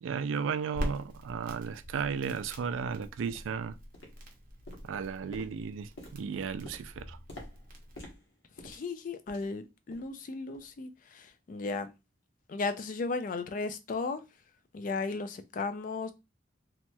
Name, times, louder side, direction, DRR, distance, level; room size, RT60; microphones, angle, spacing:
voice 1, 0.0-3.8 4.8-7.2, right 6 dB, 85° right, 0.3 m, -34 dB
Crackle, 0.7-8.0, equal, 45° right, 0.7 m, -43 dB
sound 1, 1.3-1.4 1.9-2.0 2.6-2.7 3.3-3.6 3.9-4.4 4.7-9.6 9.9-10.2 10.5-10.7 11.3-11.4, left 1 dB, 85° left, 1.0 m, -50 dB
voice 2, 8.6-11.9 12.5-14.2 14.7-16.1, left 4 dB, 45° left, 0.3 m, -35 dB
3.0 x 2.9 x 2.2 m
head